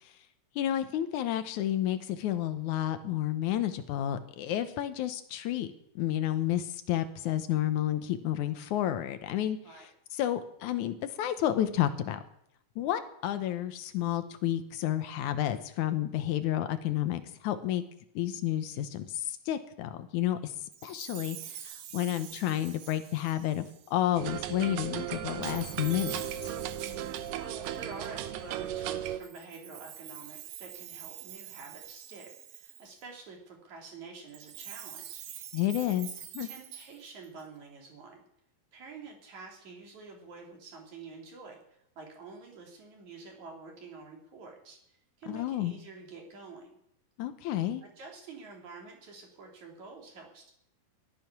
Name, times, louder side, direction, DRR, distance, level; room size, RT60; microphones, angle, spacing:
voice 1, 0.6-12.2 12.8-17.8 18.2-20.5 20.8-26.5 35.5-36.1 36.3-36.5 45.3-45.7 47.2-47.8, left 12 dB, 70° left, 10 dB, 2.0 m, -31 dB
Chime, 20.7-24.1 25.4-28.3 29.2-33.0 34.3-37.4, right 11 dB, 90° right, 3.1 m, -46 dB
sound 1, 24.2-29.2, right 11 dB, 75° right, 2.3 m, -36 dB
voice 2, 27.3-35.3 36.4-38.2 38.7-46.8 47.8-50.5, right 4 dB, 50° right, 1 dB, 4.1 m, -48 dB
17.0 x 12.5 x 6.0 m, 0.76 s
omnidirectional pair, 4.3 m